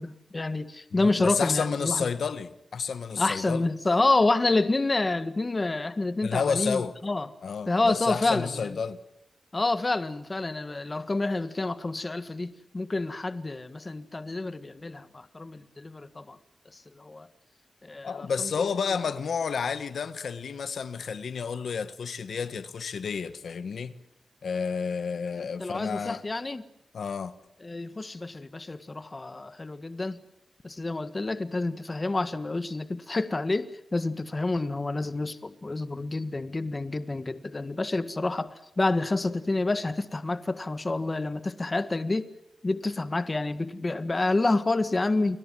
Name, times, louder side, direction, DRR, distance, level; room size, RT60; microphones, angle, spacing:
voice 1, 0.0-2.1 3.2-7.3 7.7-8.7 9.5-16.4 16.7-17.3 17.8-18.5 25.6-26.6 27.6-30.2 30.6-42.3 42.6-45.4, left 2 dB, 30° left, 1.6 m, -28 dB
voice 2, 0.9-3.7 6.2-7.0 7.4-9.0 18.0-23.9 24.4-26.2 26.9-27.4, left 6 dB, 85° left, 1.4 m, -30 dB
30.0 x 22.0 x 7.6 m
wide cardioid pair, 105°, 0 cm